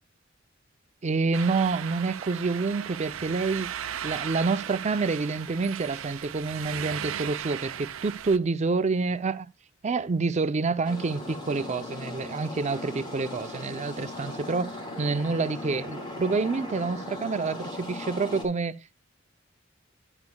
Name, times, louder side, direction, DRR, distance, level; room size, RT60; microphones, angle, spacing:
voice 1, 1.0-3.7 4.0-9.5 9.8-18.7, right 4 dB, 35° right, 0.5 m, -28 dB
sound 1, 1.3-8.4, right 9 dB, 85° right, 0.5 m, -36 dB
sound 2, 10.8-18.4, left 2 dB, 25° left, 2.9 m, -38 dB
12.0 x 9.0 x 2.2 m
head